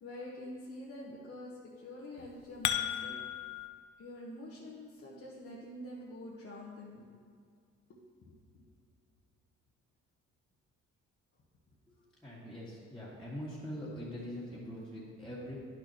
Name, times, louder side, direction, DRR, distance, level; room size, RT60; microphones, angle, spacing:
voice 1, 0.0-3.2 4.0-7.2 7.9-8.6, left 1 dB, 50° left, -4 dB, 1.1 m, -47 dB
sound 1, 2.2-3.7, left 11 dB, 75° left, 0.5 m, -34 dB
voice 2, 12.2-15.5, equal, ahead, -10 dB, 2.0 m, -43 dB
10.0 x 6.3 x 2.9 m, 2.2 s
cardioid pair, 90°, 30 cm